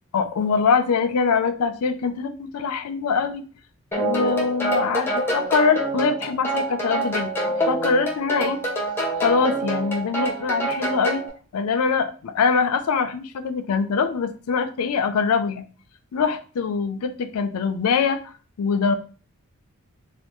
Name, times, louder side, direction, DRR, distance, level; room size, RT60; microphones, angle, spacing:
voice 1, 0.1-3.4 4.0-7.3 7.6-8.6 9.2-11.2 11.5-15.6 16.1-19.0, left 5 dB, 90° left, 9 dB, 0.4 m, -23 dB
sound 1, 3.9-11.3, right 1 dB, 10° left, 0.7 m, -26 dB
3.3 x 2.4 x 2.9 m, 0.38 s
head